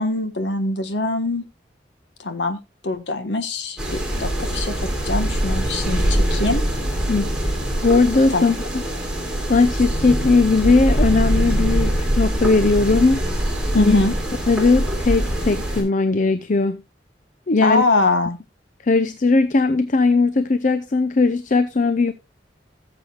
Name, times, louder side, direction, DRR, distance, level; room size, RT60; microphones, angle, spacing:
voice 1, 0.0-1.4 2.2-2.6 2.8-6.6 8.3-8.5 13.7-14.1 17.6-18.4, left 2 dB, 80° left, 1.4 m, -23 dB
sound 1, 3.8-15.8, right 1 dB, 5° right, 3.4 m, -23 dB
voice 2, 7.1-7.5 7.8-8.5 9.5-13.2 13.8-14.0 14.5-16.8 17.5-17.8 18.8-22.1, left 3 dB, 45° left, 0.6 m, -18 dB
17.0 x 7.6 x 2.4 m
head